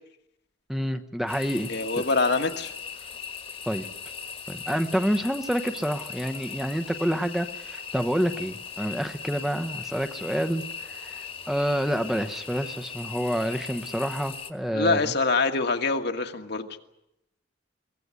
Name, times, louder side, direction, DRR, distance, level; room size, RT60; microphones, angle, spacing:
voice 1, 0.7-1.7 2.0-2.1 3.7-3.9 4.5-15.0, equal, ahead, 8 dB, 0.9 m, -28 dB
sound 1, 1.3-14.5, left 6 dB, 30° left, 1.6 m, -39 dB
voice 2, 1.7-2.7 14.7-16.7, left 3 dB, 60° left, 5 dB, 1.6 m, -25 dB
23.5 x 17.5 x 9.7 m, 0.86 s
head